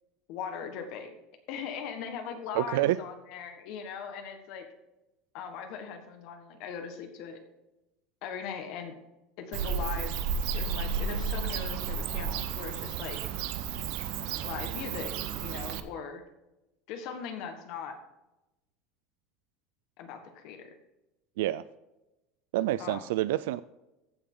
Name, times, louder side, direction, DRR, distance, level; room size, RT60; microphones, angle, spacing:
voice 1, 0.3-1.1 1.5-4.6 5.3-7.4 8.2-9.0 9.4-10.1 10.5-13.2 14.4-15.1 15.4-16.3 16.9-18.0 20.0-20.7 22.8-23.1, left 7 dB, 50° left, 5 dB, 1.5 m, -39 dB
voice 2, 2.5-3.0 21.4-21.6 22.5-23.6, right 15 dB, 90° right, 15 dB, 0.3 m, -27 dB
Bird / Cricket, 9.5-15.8, right 6 dB, 60° right, 0.9 m, -32 dB
15.0 x 7.0 x 3.8 m, 0.96 s
cardioid pair, 170°, 0 cm